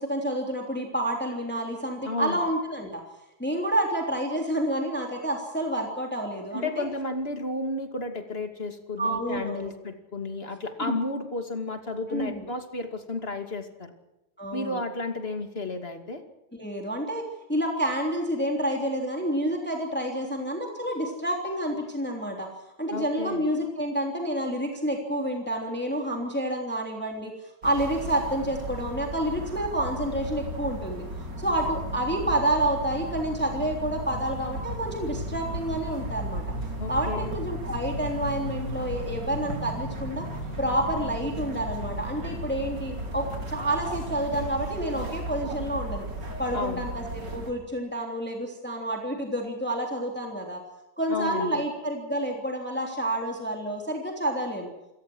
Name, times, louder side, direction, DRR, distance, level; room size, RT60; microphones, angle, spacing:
voice 1, 0.0-3.0 3.4-6.8 9.0-9.7 10.9-11.0 12.1-12.4 14.4-14.8 16.6-22.5 22.8-31.0 31.4-36.4 36.9-40.2 40.6-46.1 46.4-50.6 51.0-54.7, right 1 dB, 5° left, 1 dB, 3.2 m, -29 dB
voice 2, 2.0-2.4 6.5-13.9 14.5-16.2 22.9-23.5 36.8-37.4 46.5-46.9 51.1-51.6, left 2 dB, 35° left, 6 dB, 2.8 m, -32 dB
sound 1, 27.6-47.5, right 1 dB, 85° right, 4.4 m, -35 dB
sound 2, 35.1-44.1, left 3 dB, 25° right, 7.0 m, -43 dB
28.0 x 18.0 x 6.3 m, 0.95 s
omnidirectional pair, 1.8 m